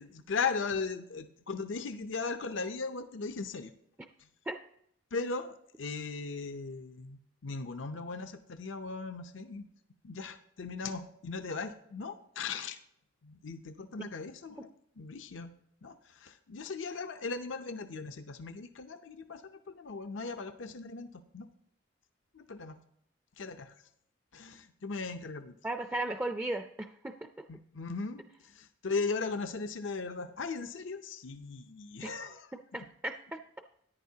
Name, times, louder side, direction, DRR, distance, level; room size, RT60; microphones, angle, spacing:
voice 1, 0.0-3.7 5.1-9.7 10.0-12.8 13.2-14.7 15.0-15.5 15.8-21.5 22.3-22.8 23.4-23.7 24.3-25.6 27.5-32.5, left 4 dB, 85° left, 8 dB, 0.6 m, -38 dB
voice 2, 25.6-27.4 32.0-32.1 32.7-33.4, right 1 dB, 10° right, 6 dB, 0.4 m, -36 dB
14.0 x 10.0 x 2.8 m, 0.73 s
head